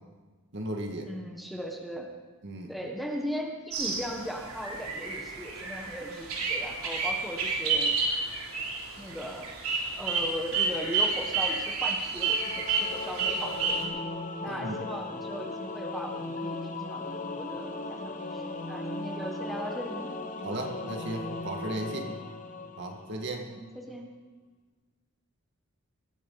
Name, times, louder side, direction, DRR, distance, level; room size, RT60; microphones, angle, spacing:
voice 1, 0.5-1.1 2.4-2.7 14.5-14.8 20.4-22.1 22.8-23.4, right 1 dB, 55° right, 2 dB, 2.1 m, -35 dB
voice 2, 1.1-2.1 2.7-7.9 9.0-9.5 9.9-14.0 14.4-20.1 22.0-22.2 23.5-24.1, equal, ahead, 1 dB, 1.4 m, -38 dB
sound 1, 3.7-13.8, right 4 dB, 90° right, 3.3 m, -30 dB
Singing / Musical instrument, 12.1-23.4, left 2 dB, 40° left, 1.2 m, -37 dB
20.5 x 13.5 x 4.2 m, 1.3 s
head